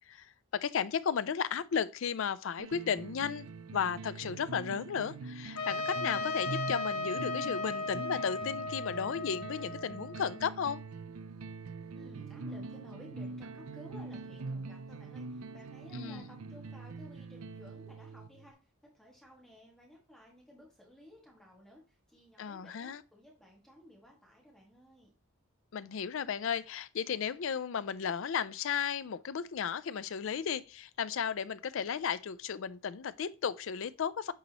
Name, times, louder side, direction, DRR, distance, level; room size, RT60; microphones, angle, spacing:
voice 1, 0.1-10.8 15.9-16.2 22.4-23.0 25.7-34.3, left 7 dB, 60° left, 0.4 m, -34 dB
sound 1, 2.6-18.5, right 3 dB, 70° right, 0.5 m, -44 dB
Trumpet, 5.6-10.4, left 3 dB, 80° left, 0.8 m, -36 dB
voice 2, 11.9-25.1, left 1 dB, ahead, 1.7 m, -55 dB
8.3 x 4.1 x 2.9 m
head